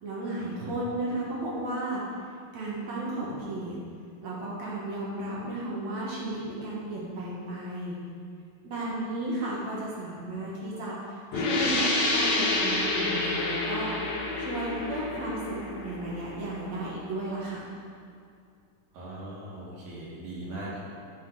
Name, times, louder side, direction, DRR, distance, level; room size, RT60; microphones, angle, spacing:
voice 1, 0.0-2.0 2.5-3.8 4.2-8.0 8.6-13.9 14.4-17.6, right 1 dB, 55° right, -5 dB, 2.4 m, -34 dB
sound 1, 11.3-16.8, left 2 dB, 60° left, 2.5 m, -29 dB
voice 2, 18.9-20.8, right 2 dB, 90° right, -6 dB, 3.8 m, -39 dB
10.0 x 5.9 x 4.8 m, 2.3 s
omnidirectional pair, 4.0 m